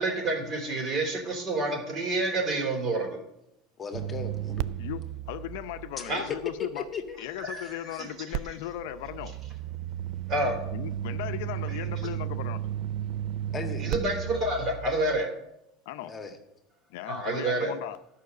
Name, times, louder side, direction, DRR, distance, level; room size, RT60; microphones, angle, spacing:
voice 1, 0.0-3.2 6.1-6.3 7.4-8.5 10.3-10.6 13.8-15.3 17.1-17.7, right 2 dB, 40° right, 2 dB, 3.5 m, -29 dB
voice 2, 3.8-4.6 6.0-6.2 6.7-7.2 7.6-8.0 13.5-13.9 16.0-16.4, left 5 dB, 25° left, 5 dB, 1.5 m, -38 dB
sound 1, 3.9-7.1 8.3-15.2, right 12 dB, 60° right, 0.4 m, -34 dB
voice 3, 4.8-6.8 7.2-9.3 10.7-12.7 15.9-16.1 16.9-18.0, left 12 dB, 75° left, 10 dB, 0.6 m, -37 dB
11.5 x 5.7 x 6.8 m, 0.84 s
supercardioid pair, 115°, 0 cm